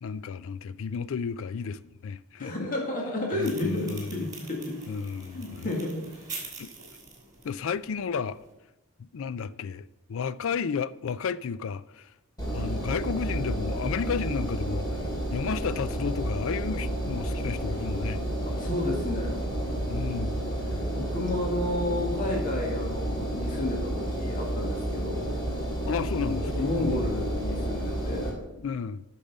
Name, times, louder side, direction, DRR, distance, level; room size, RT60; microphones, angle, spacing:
voice 1, 0.0-2.5 3.3-4.1 4.9-5.7 6.6-6.7 7.4-8.4 9.0-12.1 12.5-14.9 15.3-18.2 19.9-20.5 25.9-27.2 28.6-29.0, left 6 dB, 65° left, 0.4 m, -32 dB
voice 2, 2.4-4.9 5.3-6.3 18.4-19.4 20.7-25.3 26.3-28.5, left 1 dB, 40° left, 1.9 m, -32 dB
sound 1, 3.4-8.5, right 4 dB, 20° right, 2.9 m, -44 dB
Engine, 12.4-28.3, right 1 dB, 20° left, 2.6 m, -31 dB
8.7 x 6.6 x 5.4 m
head